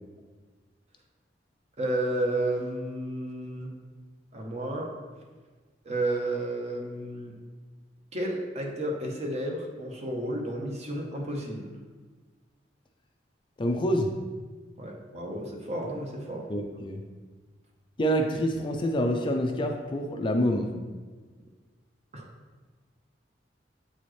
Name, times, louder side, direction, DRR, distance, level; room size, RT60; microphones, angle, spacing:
voice 1, 1.8-3.7 4.3-4.9 5.8-7.3 8.1-11.7 14.8-16.5 22.1-22.2, right 1 dB, 40° right, 0 dB, 0.9 m, -32 dB
voice 2, 13.6-14.1 16.5-17.0 18.0-20.7, equal, 25° left, 3 dB, 0.4 m, -26 dB
7.7 x 4.2 x 3.2 m, 1.4 s
head